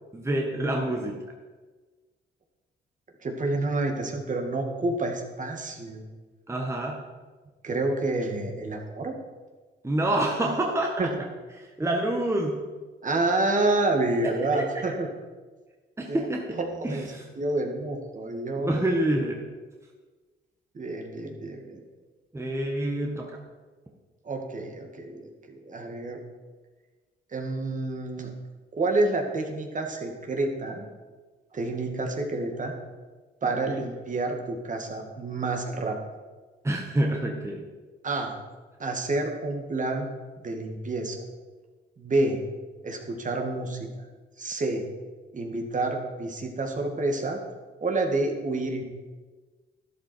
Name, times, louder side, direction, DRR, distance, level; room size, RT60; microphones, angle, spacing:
voice 1, 0.1-1.2 6.5-7.0 9.8-11.1 11.5-12.6 14.2-14.8 16.0-16.6 16.8-17.3 18.6-19.4 22.3-23.4 33.4-33.8 36.6-37.7, right 1 dB, 15° right, 0 dB, 1.5 m, -27 dB
voice 2, 3.2-6.0 7.6-9.1 11.0-11.1 13.0-15.1 16.1-16.3 16.6-17.1 17.4-18.7 20.7-21.8 24.2-26.2 27.3-28.3 28.8-30.9 31.5-32.7 33.4-36.0 38.0-38.3 38.8-40.1 40.4-41.2 42.0-42.4 42.8-43.8 44.4-44.9 45.3-47.4 47.8-48.8, right 2 dB, 40° right, 2 dB, 2.2 m, -28 dB
12.5 x 11.5 x 4.6 m, 1.3 s
cardioid pair, 90°, 20 cm